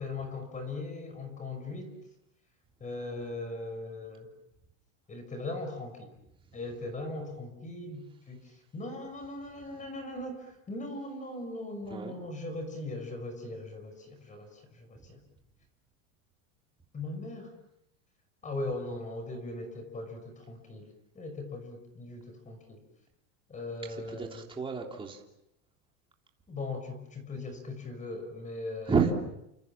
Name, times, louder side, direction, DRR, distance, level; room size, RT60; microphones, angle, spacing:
voice 1, 0.0-1.9 2.8-4.3 5.1-6.1 6.5-15.2 16.9-17.5 18.4-20.9 21.1-22.8 23.5-24.3 26.5-28.9, left 2 dB, 20° left, 7 dB, 6.1 m, -39 dB
voice 2, 23.9-25.2 28.9-29.1, right 5 dB, 15° right, 1 dB, 3.3 m, -30 dB
30.0 x 27.0 x 7.4 m, 0.83 s
supercardioid pair, 155°, 39 cm